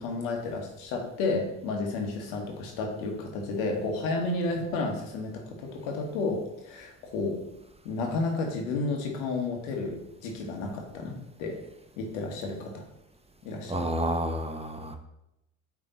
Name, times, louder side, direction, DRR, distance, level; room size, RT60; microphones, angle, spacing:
voice 1, 0.0-7.4 7.8-11.6 12.0-12.8 13.4-13.8, left 3 dB, 70° left, 1 dB, 1.6 m, -32 dB
voice 2, 13.7-15.0, right 1 dB, 15° right, 6 dB, 0.8 m, -30 dB
8.8 x 3.7 x 4.1 m, 0.86 s
hypercardioid pair, 60°, 38 cm